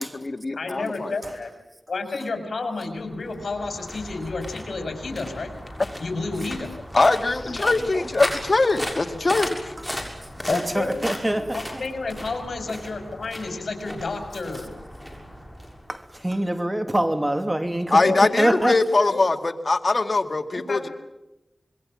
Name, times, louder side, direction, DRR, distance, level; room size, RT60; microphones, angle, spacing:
voice 1, 0.0-1.2 6.9-9.7 17.9-20.9, left 3 dB, 55° left, 7 dB, 2.0 m, -22 dB
voice 2, 0.6-1.5 1.9-5.5 6.0-6.8 10.5-14.7 18.0-18.5 20.7-20.9, left 3 dB, 80° left, 7 dB, 5.5 m, -30 dB
sound 1, 2.9-16.3, equal, 5° left, 6.7 m, -36 dB
voice 3, 10.5-11.6 15.9-18.0 18.4-19.1, right 1 dB, 20° right, 8 dB, 2.9 m, -25 dB
26.0 x 22.0 x 7.5 m, 0.94 s
wide cardioid pair, 50°, 0 cm